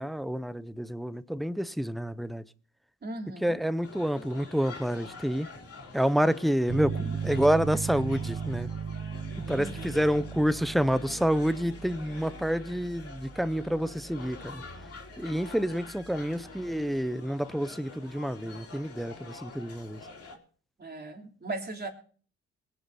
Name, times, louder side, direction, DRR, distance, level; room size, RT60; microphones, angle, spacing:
voice 1, 0.0-2.4 3.4-5.5 5.9-8.7 9.5-14.6 15.2-20.0, equal, ahead, 0.6 m, -28 dB
voice 2, 3.0-3.6 9.5-10.0 20.8-21.9, right 2 dB, 35° right, 3.1 m, -38 dB
sound 1, 3.8-20.4, left 4 dB, 50° left, 3.1 m, -47 dB
Piano, 6.7-16.9, right 6 dB, 80° right, 3.7 m, -38 dB
22.0 x 8.1 x 4.1 m
cardioid pair, 90°, 30 cm